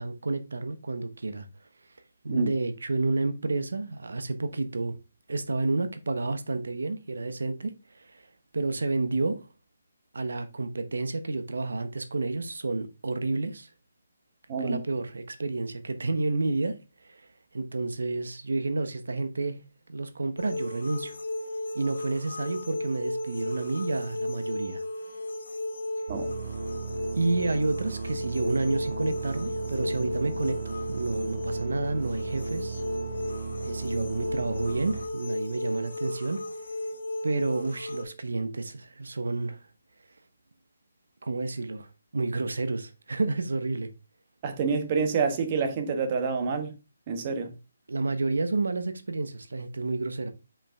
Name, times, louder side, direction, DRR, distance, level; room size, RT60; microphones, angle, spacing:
voice 1, 0.0-1.5 2.2-5.0 5.3-8.2 8.5-9.4 10.1-13.7 14.6-16.8 17.0-17.2 17.5-19.6 19.9-21.1 21.7-24.8 27.1-32.8 33.6-36.4 37.2-39.6 41.2-41.9 42.1-43.9 47.9-50.3, right 3 dB, 80° right, 1.0 m, -30 dB
voice 2, 14.5-14.8 26.1-26.3 44.4-46.7 47.1-47.5, right 5 dB, 30° right, 1.2 m, -27 dB
sound 1, 20.4-38.0, left 1 dB, 75° left, 2.5 m, -35 dB
sound 2, 26.1-35.1, right 5 dB, 55° right, 1.4 m, -36 dB
5.5 x 5.1 x 3.5 m
hypercardioid pair, 160°, 0 cm